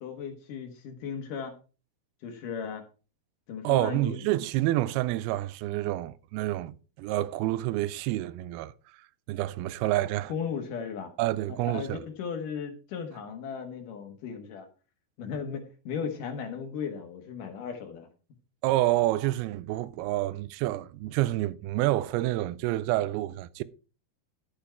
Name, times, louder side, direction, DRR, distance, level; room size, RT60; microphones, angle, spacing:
voice 1, 0.0-1.5 2.2-2.8 3.5-4.3 10.3-11.1 11.7-14.7 15.2-18.1, left 6 dB, 65° left, 2.4 m, -36 dB
voice 2, 3.6-8.7 9.3-10.3 11.2-12.0 18.6-23.6, right 16 dB, 80° right, 2.5 m, -28 dB
12.0 x 7.0 x 4.5 m
omnidirectional pair, 4.5 m